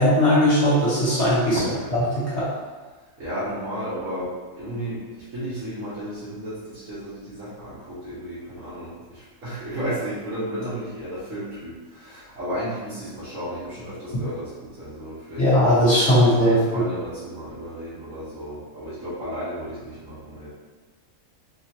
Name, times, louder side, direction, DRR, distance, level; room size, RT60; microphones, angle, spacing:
voice 1, 0.0-1.6 1.9-2.5 15.4-16.8, equal, 55° left, -8 dB, 1.1 m, -19 dB
voice 2, 1.5-1.9 3.2-15.4 16.1-20.5, equal, 65° right, -13 dB, 1.5 m, -33 dB
4.1 x 2.2 x 2.8 m, 1.3 s
omnidirectional pair, 1.5 m